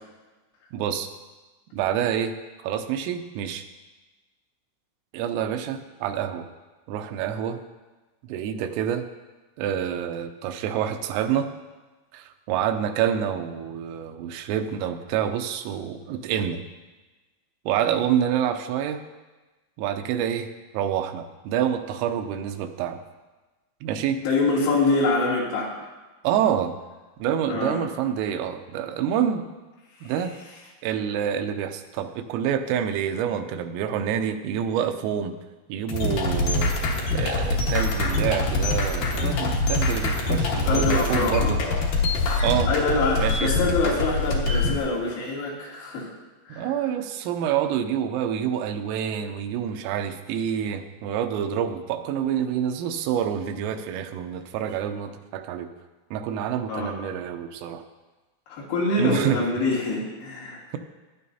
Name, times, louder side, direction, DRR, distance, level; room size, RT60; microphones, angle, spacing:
voice 1, 0.7-1.1 1.7-2.3 2.6-3.7 5.1-6.5 6.9-7.6 8.2-9.0 9.6-11.5 12.1-16.6 17.7-19.0 19.8-20.5 20.7-23.0 23.8-24.2 26.2-26.7 27.2-29.5 30.0-30.4 30.8-35.3 35.7-36.7 37.1-41.6 42.4-42.7 43.2-43.5 46.5-55.7 56.1-57.8 59.0-59.4, right 9 dB, 80° right, 7 dB, 3.2 m, -27 dB
voice 2, 24.2-25.7 27.5-27.8 40.7-41.6 42.7-46.1 46.5-46.7 56.7-57.0 58.5-60.6, left 3 dB, 90° left, -6 dB, 5.7 m, -25 dB
sound 1, 35.9-44.8, left 2 dB, 70° left, 2.1 m, -24 dB
18.5 x 11.5 x 2.8 m, 1.2 s
omnidirectional pair, 6.0 m